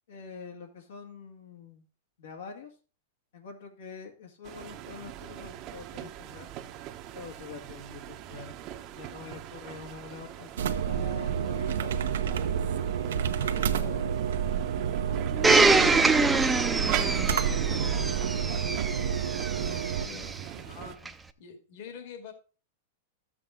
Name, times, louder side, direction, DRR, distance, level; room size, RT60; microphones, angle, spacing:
voice 1, 0.1-1.9 2.2-2.7 3.3-6.5 7.1-8.2 8.9-12.1 13.5-14.4 15.1-16.2 16.5-20.4 20.6-21.1, left 5 dB, 85° left, 1 dB, 2.1 m, -45 dB
sound 1, 4.4-21.0, right 12 dB, 40° right, 0.8 m, -42 dB
sound 2, 10.6-20.1, right 8 dB, 85° right, 0.8 m, -29 dB
Domestic sounds home sounds, 15.4-20.3 21.0-21.1, right 3 dB, 10° right, 0.6 m, -25 dB
voice 2, 20.5-21.0 21.4-22.3, left 6 dB, 60° left, 5 dB, 2.2 m, -45 dB
12.5 x 7.5 x 3.8 m, 0.36 s
hypercardioid pair, 135°, 0 cm